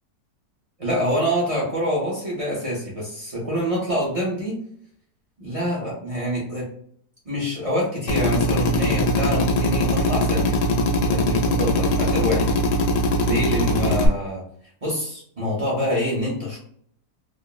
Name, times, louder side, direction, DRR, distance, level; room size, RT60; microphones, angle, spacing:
voice 1, 0.8-4.6 5.4-6.7 7.2-10.6 11.0-12.5 13.2-14.4 14.8-16.6, equal, 35° right, -6 dB, 0.5 m, -26 dB
Drill, 8.1-14.1, left 1 dB, 90° left, 1.2 m, -21 dB
3.5 x 2.0 x 2.3 m, 0.65 s
omnidirectional pair, 1.8 m